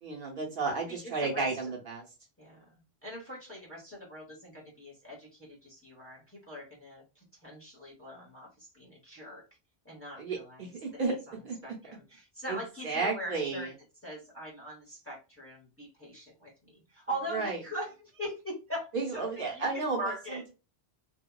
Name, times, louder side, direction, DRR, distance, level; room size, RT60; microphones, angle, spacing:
voice 1, 0.0-2.0 10.2-11.6 12.5-12.6 12.8-13.7 17.3-17.6 18.9-20.0 20.3-20.4, right 4 dB, 60° right, -1 dB, 0.9 m, -32 dB
voice 2, 0.9-1.5 2.4-9.5 9.8-11.0 11.3-11.4 11.6-13.7 14.0-20.5, equal, 15° left, -4 dB, 0.9 m, -42 dB
2.7 x 2.3 x 2.2 m, 0.29 s
omnidirectional pair, 1.0 m